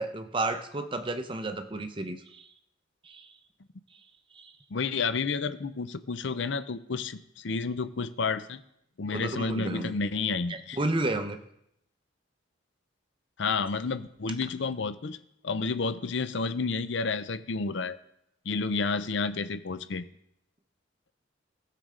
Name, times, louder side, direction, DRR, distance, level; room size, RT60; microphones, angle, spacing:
voice 1, 0.0-2.5 3.0-3.3 4.3-4.5 9.1-9.9 10.5-11.4, right 2 dB, 25° right, 8 dB, 0.7 m, -32 dB
voice 2, 4.7-8.6 9.0-10.8 13.4-15.2 15.4-18.0 18.5-20.1, left 4 dB, 60° left, 13 dB, 0.6 m, -30 dB
15.0 x 6.7 x 3.8 m, 0.77 s
head